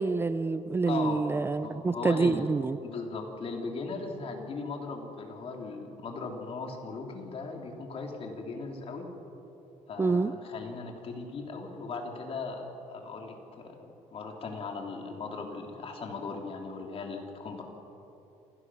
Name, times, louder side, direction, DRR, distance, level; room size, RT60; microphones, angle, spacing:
voice 1, 0.0-2.8 10.0-10.3, right 4 dB, 15° right, 13 dB, 0.4 m, -27 dB
voice 2, 0.9-1.2 1.6-2.5 2.8-9.1 9.9-17.6, left 4 dB, 45° left, 2 dB, 3.3 m, -38 dB
27.5 x 17.0 x 6.4 m, 3.0 s
cardioid pair, 135°, 14 cm